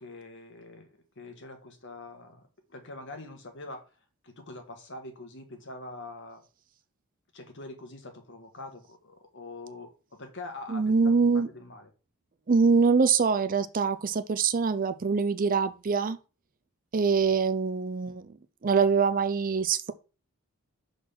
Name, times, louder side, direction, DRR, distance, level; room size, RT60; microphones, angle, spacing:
voice 1, 0.0-3.8 4.2-6.4 7.3-11.9, left 2 dB, 55° left, 1.7 m, -44 dB
voice 2, 10.7-11.5 12.5-16.2 16.9-18.3 18.6-19.9, right 5 dB, 40° right, 0.5 m, -24 dB
6.1 x 4.0 x 5.9 m
head